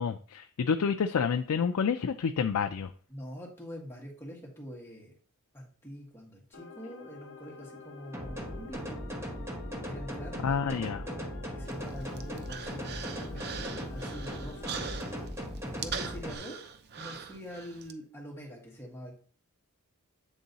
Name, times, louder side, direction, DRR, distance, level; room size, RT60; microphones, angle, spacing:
voice 1, 0.0-2.9 10.4-11.0, left 6 dB, 75° left, 6 dB, 0.4 m, -29 dB
voice 2, 3.1-5.1 5.5-9.0 9.8-10.7 11.0-14.7 15.6-16.6 17.0-19.1, equal, 10° left, -2 dB, 2.0 m, -45 dB
sound 1, 6.5-15.3, left 3 dB, 60° left, 1.2 m, -48 dB
sound 2, 8.1-16.3, equal, 10° right, 1.1 m, -38 dB
Human voice, 11.7-17.9, right 6 dB, 50° right, 0.6 m, -42 dB
8.2 x 3.7 x 4.0 m, 0.42 s
head